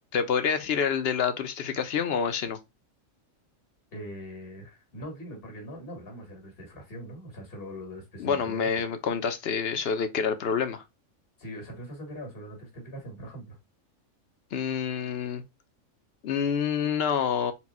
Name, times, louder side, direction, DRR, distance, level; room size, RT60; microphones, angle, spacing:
voice 1, 0.1-2.6 8.2-10.8 14.5-15.4 16.2-17.5, left 7 dB, 60° left, 0.7 m, -27 dB
voice 2, 3.9-8.7 11.4-13.6, equal, 45° left, 2.0 m, -41 dB
4.4 x 2.2 x 4.1 m
omnidirectional pair, 1.4 m